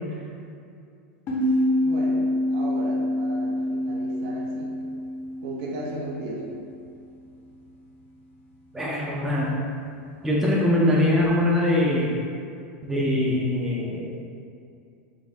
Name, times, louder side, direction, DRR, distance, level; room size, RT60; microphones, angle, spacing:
sound 1, 1.3-6.6, left 1 dB, 35° left, 0.7 m, -26 dB
voice 1, 1.8-4.7 5.4-6.5, right 1 dB, 55° right, -2 dB, 0.8 m, -36 dB
voice 2, 8.7-9.6 10.2-12.2 12.8-14.1, left 1 dB, 5° right, -5 dB, 0.5 m, -22 dB
4.0 x 2.5 x 3.8 m, 2.5 s
supercardioid pair, 135°, 7 cm